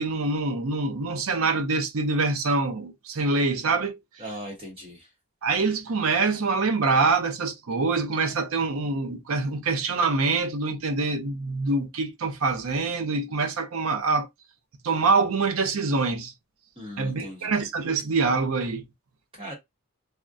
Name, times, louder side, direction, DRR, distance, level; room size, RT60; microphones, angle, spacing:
voice 1, 0.0-4.0 5.4-14.3 14.8-16.3 17.0-18.8, right 3 dB, 70° right, 0.6 m, -25 dB
voice 2, 4.2-5.1 16.8-17.5 19.4-19.5, equal, 25° right, 0.9 m, -38 dB
3.4 x 2.1 x 2.5 m
head